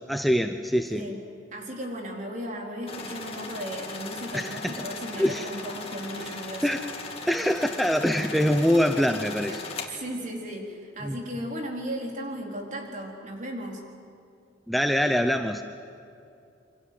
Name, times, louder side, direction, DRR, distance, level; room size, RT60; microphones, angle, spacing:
voice 1, 0.1-1.1 4.3-4.8 5.2-5.5 6.6-6.8 7.2-9.6 11.0-11.2 14.7-15.6, equal, ahead, 6 dB, 0.8 m, -24 dB
voice 2, 1.5-6.8 9.5-13.8, equal, 45° right, 0 dB, 4.3 m, -36 dB
sound 1, 2.9-9.9, left 3 dB, 35° left, 2.5 m, -38 dB
28.0 x 25.0 x 7.8 m, 2.6 s
head